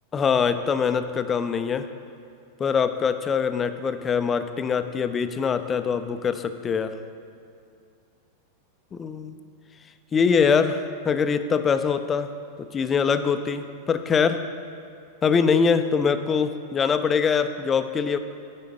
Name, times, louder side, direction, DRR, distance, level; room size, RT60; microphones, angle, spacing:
voice 1, 0.1-1.8 2.6-7.0 8.9-9.4 10.1-10.8 11.1-12.3 12.6-14.4 15.2-18.2, left 6 dB, 20° left, 10 dB, 0.4 m, -23 dB
9.5 x 4.5 x 5.2 m, 2.4 s
figure-of-eight pair, 90°, 0 cm